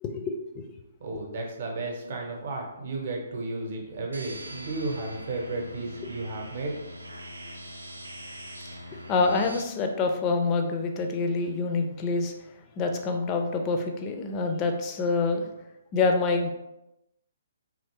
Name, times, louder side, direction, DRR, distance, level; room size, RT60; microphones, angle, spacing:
voice 1, 0.0-0.6 8.9-12.3 12.8-15.5 15.9-16.5, left 3 dB, 25° left, 4 dB, 0.4 m, -26 dB
voice 2, 1.0-6.7, right 2 dB, 50° right, 0 dB, 0.8 m, -33 dB
sound 1, 4.1-9.6, equal, 80° right, 0.3 m, -42 dB
2.9 x 2.6 x 2.9 m, 0.91 s
figure-of-eight pair, 130°, 0 cm